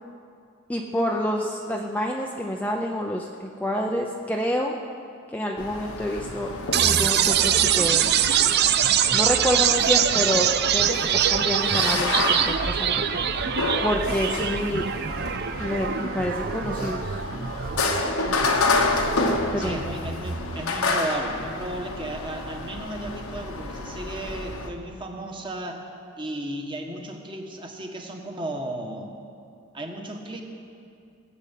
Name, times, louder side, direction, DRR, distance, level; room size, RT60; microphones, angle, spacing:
voice 1, 0.7-4.8 5.3-6.5 6.8-8.1 9.1-13.5 13.8-14.8 15.6-17.2 19.5-19.8, equal, 5° left, 0 dB, 0.6 m, -28 dB
sound 1, 5.6-24.7, left 3 dB, 80° left, 1.3 m, -30 dB
sound 2, 6.7-20.7, right 9 dB, 50° right, 0.5 m, -24 dB
voice 2, 19.6-25.8 26.2-29.1 29.7-30.4, right 1 dB, 20° right, 2 dB, 1.4 m, -34 dB
19.5 x 6.9 x 8.4 m, 2.4 s
head